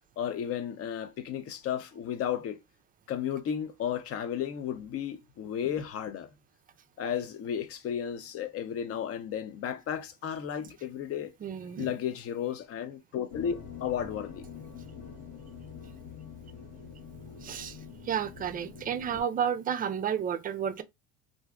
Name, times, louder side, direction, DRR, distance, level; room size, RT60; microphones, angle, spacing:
voice 1, 0.2-2.6 3.1-6.3 7.0-11.3 11.8-14.5, left 9 dB, 40° left, 0.6 m, -33 dB
voice 2, 11.4-11.9 17.4-17.8 18.0-20.8, right 8 dB, 25° right, 0.4 m, -31 dB
sound 1, 13.3-19.2, left 6 dB, 80° left, 1.2 m, -45 dB
2.6 x 2.1 x 3.6 m
supercardioid pair, 90°, 34 cm